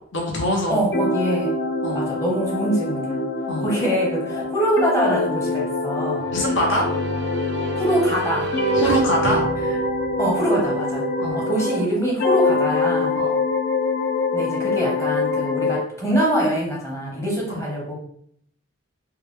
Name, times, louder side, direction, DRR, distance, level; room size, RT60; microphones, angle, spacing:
voice 1, 0.1-0.8 1.8-2.0 3.5-3.6 4.3-4.4 6.3-6.9 8.7-9.4 11.2-11.4 13.1-13.3 17.5-17.6, equal, 70° left, -1 dB, 0.9 m, -23 dB
voice 2, 0.7-1.6 1.9-3.2 3.6-6.3 7.8-8.5 8.8-8.9 10.2-13.2 14.3-17.9, right 1 dB, 15° left, -3 dB, 0.9 m, -24 dB
sound 1, 0.9-8.1 8.5-11.9 12.2-15.9, left 2 dB, 50° left, 0.5 m, -24 dB
sound 2, 6.2-10.9, equal, 55° right, 0.4 m, -30 dB
3.7 x 2.2 x 3.2 m, 0.67 s
head